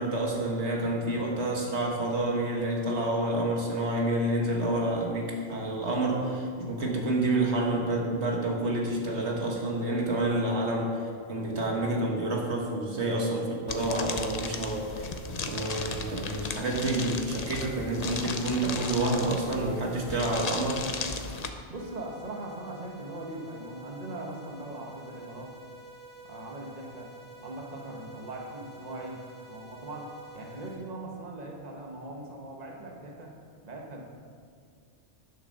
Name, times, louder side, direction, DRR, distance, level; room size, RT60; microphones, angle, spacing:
voice 1, 0.0-20.9, right 1 dB, 80° right, -1 dB, 1.9 m, -29 dB
sound 1, 13.7-21.5, left 4 dB, 40° left, 0.7 m, -36 dB
sound 2, 21.7-30.7, right 3 dB, 20° right, 2.6 m, -49 dB
voice 2, 21.7-25.6 26.2-27.1 27.4-29.2 29.5-33.4 33.6-34.0, right 1 dB, 40° right, 0 dB, 1.4 m, -40 dB
11.0 x 6.7 x 6.6 m, 2.2 s
omnidirectional pair, 1.1 m